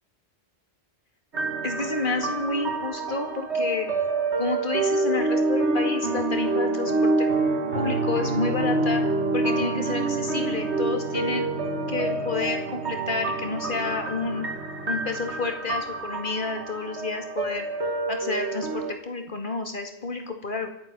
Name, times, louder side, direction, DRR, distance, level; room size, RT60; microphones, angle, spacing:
sound 1, 1.3-18.9, right 3 dB, 75° right, 2.3 m, -27 dB
voice 1, 1.6-3.9 4.4-7.3 7.7-11.5 11.9-14.5 14.9-17.7 18.1-20.7, left 3 dB, 50° left, 5 dB, 2.3 m, -30 dB
26.0 x 8.8 x 6.1 m, 0.81 s
omnidirectional pair, 1.1 m